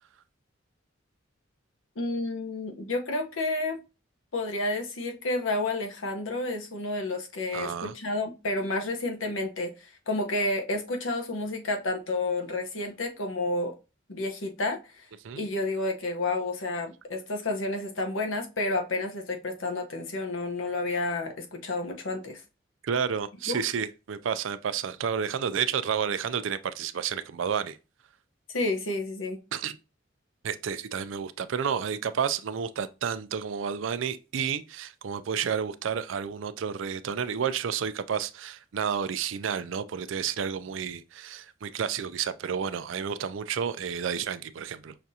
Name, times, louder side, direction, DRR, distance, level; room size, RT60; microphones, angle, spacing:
voice 1, 2.0-3.8 4.3-13.7 14.1-14.8 15.4-22.4 23.5-23.6 28.5-29.4, left 2 dB, 90° left, 0.9 m, -30 dB
voice 2, 7.5-7.9 15.2-15.4 22.8-27.8 29.5-29.8 30.4-45.0, right 7 dB, 75° right, 0.4 m, -31 dB
5.8 x 2.5 x 2.7 m
head